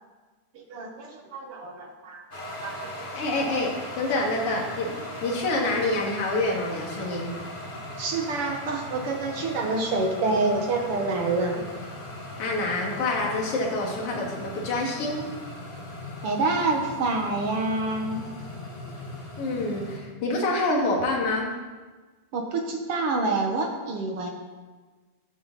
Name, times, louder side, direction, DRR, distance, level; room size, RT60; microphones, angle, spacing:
voice 1, 0.5-3.1 8.0-11.7 16.2-18.2 22.3-24.3, right 3 dB, 65° right, 2 dB, 1.5 m, -27 dB
sound 1, 2.3-20.0, left 1 dB, 25° left, 1.0 m, -39 dB
voice 2, 3.1-7.3 12.4-15.2 19.4-21.5, left 2 dB, 45° left, -2 dB, 2.9 m, -27 dB
15.0 x 10.5 x 4.1 m, 1.3 s
omnidirectional pair, 4.1 m